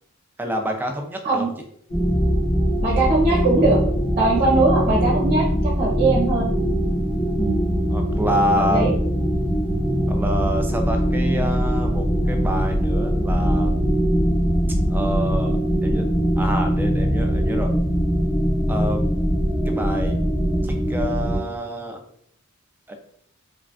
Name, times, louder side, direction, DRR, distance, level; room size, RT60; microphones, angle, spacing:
voice 1, 0.4-1.5 4.4-4.5 7.9-9.0 10.1-13.8 14.9-16.0 16.4-17.7 18.7-19.0 19.7-20.2 20.6-22.0 22.9-23.0, equal, 10° right, 4 dB, 0.3 m, -27 dB
sound 1, 1.9-21.4, equal, 25° left, 0.7 m, -21 dB
voice 2, 2.8-3.8 4.2-6.5 7.4-7.5 8.7-8.9, right 2 dB, 35° right, -4 dB, 1.0 m, -20 dB
3.1 x 2.4 x 2.3 m, 0.65 s
head